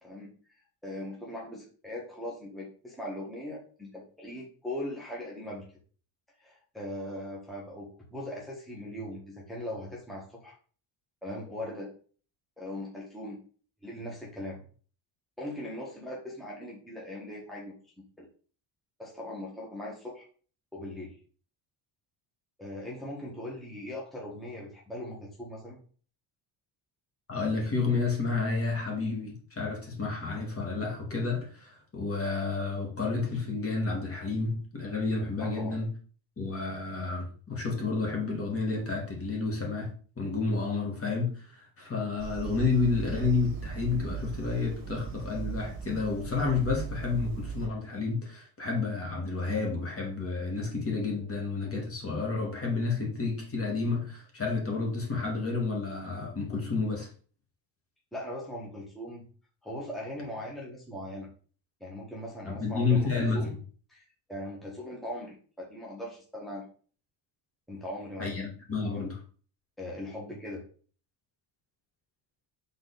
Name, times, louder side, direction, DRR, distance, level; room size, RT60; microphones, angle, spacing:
voice 1, 0.8-5.6 6.4-10.5 11.2-11.9 12.6-13.4 13.8-14.6 15.4-17.8 18.2-18.3 19.0-20.2 20.7-21.1 22.6-25.8 35.4-35.8 58.1-59.3 59.6-61.3 61.8-63.5 63.9-64.0 64.3-66.7 67.7-68.3 68.8-69.1 69.8-70.6, left 1 dB, ahead, 1.5 m, -39 dB
voice 2, 27.3-35.9 36.4-39.9 40.2-57.1 62.5-63.4 68.2-69.2, left 4 dB, 30° left, 1.9 m, -30 dB
sound 1, 42.2-47.7, right 7 dB, 45° right, 1.5 m, -38 dB
6.2 x 3.9 x 4.1 m
cardioid pair, 130°, 48 cm